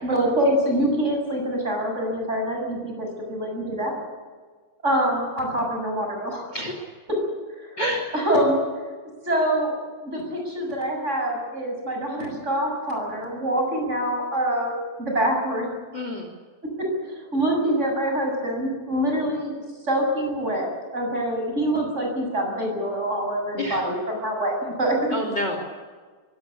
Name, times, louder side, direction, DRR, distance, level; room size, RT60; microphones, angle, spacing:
voice 1, 0.0-3.9 4.8-6.6 7.6-7.7 8.1-8.6 9.3-15.7 16.6-19.6 19.8-25.1, right 1 dB, 15° right, 1 dB, 7.2 m, -25 dB
voice 2, 7.8-8.1 15.9-16.3 23.6-23.8 25.1-25.6, left 1 dB, 30° left, 4 dB, 3.2 m, -27 dB
23.0 x 17.5 x 8.5 m, 1.5 s
omnidirectional pair, 4.5 m